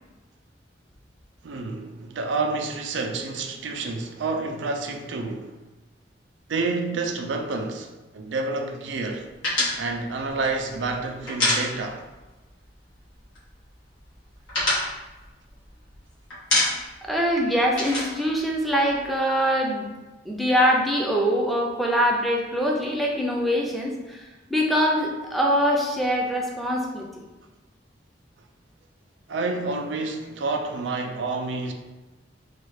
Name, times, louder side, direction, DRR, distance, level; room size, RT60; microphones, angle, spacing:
voice 1, 1.4-5.6 6.5-9.3 9.8-12.1 29.3-31.7, right 3 dB, 70° right, 0.4 m, -29 dB
sound 1, 9.4-12.2 12.5-12.7 13.0-13.6 14.0-16.0 16.3-17.1 17.3-19.1, left 1 dB, 85° left, 1.4 m, -26 dB
voice 2, 17.1-19.9 20.3-24.2 24.5-27.1, equal, ahead, 0.5 m, -23 dB
4.3 x 2.3 x 3.2 m
head